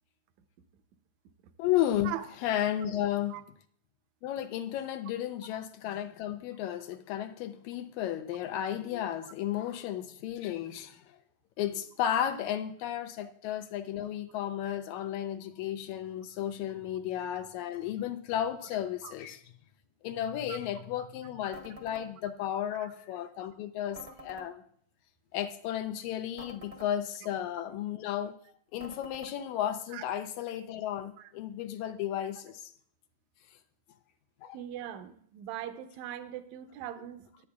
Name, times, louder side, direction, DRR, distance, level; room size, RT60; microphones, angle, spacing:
voice 1, 1.6-2.2 2.4-3.4 4.2-11.2 11.6-19.4 20.0-24.6 25.3-28.4 28.7-32.7 34.4-34.6, left 11 dB, 80° left, 1.9 m, -33 dB
sound 1, 21.5-22.1 23.9-24.5 26.4-26.9 28.8-29.3, equal, 50° right, 0.8 m, -48 dB
voice 2, 34.5-37.5, right 11 dB, 75° right, 1.9 m, -41 dB
17.0 x 10.5 x 2.3 m
omnidirectional pair, 3.3 m